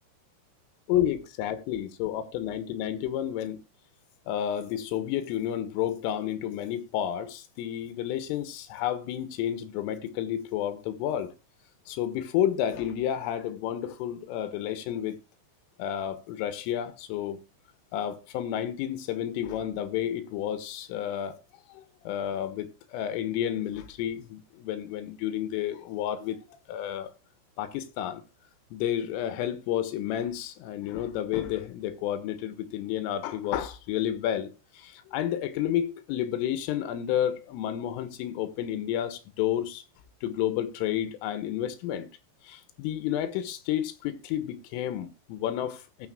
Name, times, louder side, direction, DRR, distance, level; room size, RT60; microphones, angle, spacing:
voice 1, 0.9-3.6 4.3-11.3 11.9-15.2 15.8-17.4 17.9-21.4 21.7-27.1 27.6-28.2 28.7-39.8 40.2-42.1 42.4-46.1, left 11 dB, 85° left, 3.4 m, -31 dB
18.0 x 7.2 x 2.4 m
omnidirectional pair, 5.9 m